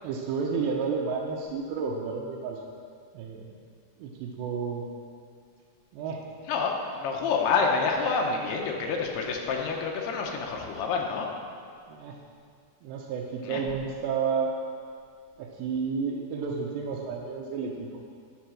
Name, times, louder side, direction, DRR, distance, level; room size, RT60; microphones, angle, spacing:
voice 1, 0.0-2.6 3.1-3.5 4.0-4.9 5.9-6.3 11.9-12.2 12.8-14.5 15.4-18.0, right 5 dB, 80° right, -2 dB, 2.8 m, -31 dB
voice 2, 6.5-11.3 13.4-13.6, left 5 dB, 75° left, 1 dB, 2.7 m, -28 dB
10.5 x 7.2 x 6.1 m, 2.2 s
omnidirectional pair, 5.2 m